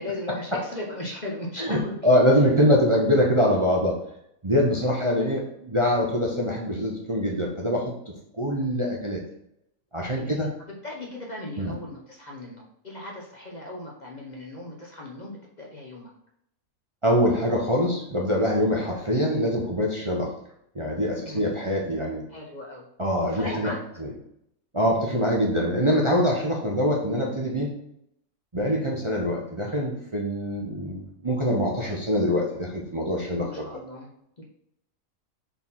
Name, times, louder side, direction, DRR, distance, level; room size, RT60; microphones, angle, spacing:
voice 1, 0.0-2.1 4.8-5.1 10.1-16.1 21.2-21.6 22.3-22.9 23.2-23.8 33.3-34.1 34.4-34.5, left 1 dB, 35° left, -2 dB, 1.0 m, -38 dB
voice 2, 1.6-4.0 4.4-7.9 8.4-9.2 9.9-10.5 11.6-11.7 17.0-20.3 20.7-22.2 23.0-23.7 24.0-24.1 24.7-27.7 28.5-33.7, equal, 25° right, -2 dB, 0.9 m, -24 dB
4.6 x 4.1 x 5.6 m, 0.74 s
omnidirectional pair, 1.5 m